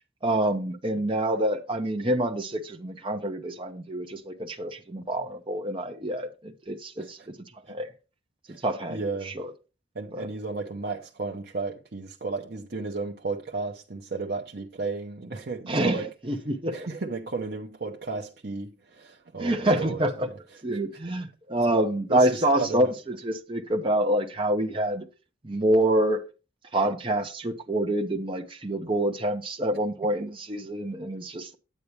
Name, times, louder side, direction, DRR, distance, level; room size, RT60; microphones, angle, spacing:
voice 1, 0.2-6.3 6.7-7.2 7.7-7.9 8.6-9.0 10.1-10.3 15.7-16.0 16.3-16.7 19.4-20.3 20.6-25.1 25.4-26.2 26.7-31.6, right 1 dB, 30° right, 0.9 m, -26 dB
voice 2, 8.9-9.3 9.9-16.1 16.7-20.8 22.1-23.0, right 3 dB, 60° right, 0.8 m, -34 dB
9.3 x 8.3 x 3.2 m
head